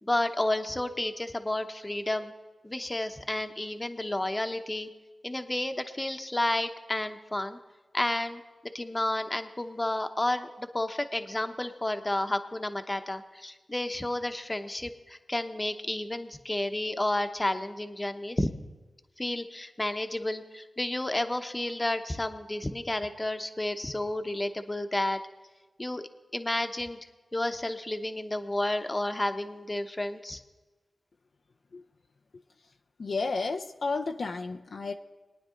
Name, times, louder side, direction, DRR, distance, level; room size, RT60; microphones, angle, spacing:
voice 1, 0.0-2.3 2.6-4.9 5.2-7.6 7.9-8.4 8.7-18.5 19.2-25.2 25.8-26.0 26.3-27.0 27.3-30.4, left 1 dB, 25° left, 8 dB, 1.0 m, -31 dB
voice 2, 33.0-34.9, left 3 dB, 70° left, 4 dB, 0.5 m, -32 dB
22.0 x 9.5 x 3.8 m, 1.3 s
cardioid pair, 55°, 0 cm